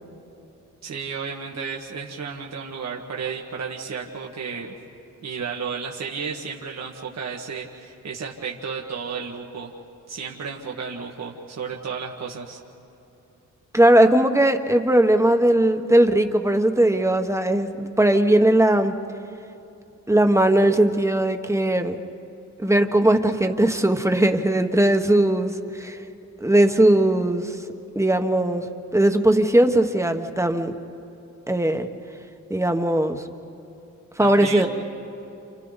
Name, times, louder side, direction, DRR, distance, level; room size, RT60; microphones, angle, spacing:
voice 1, 0.8-4.8 5.2-9.7 10.1-12.6 34.2-34.7, right 5 dB, 60° right, -1 dB, 1.7 m, -33 dB
voice 2, 13.7-18.9 20.1-22.0 22.6-26.0 26.4-27.6 27.9-28.7 28.9-30.7 31.5-31.9 32.5-33.2 34.2-34.7, right 1 dB, 10° right, 6 dB, 1.3 m, -19 dB
30.0 x 29.0 x 4.1 m, 2.8 s
cardioid pair, 90°, 31 cm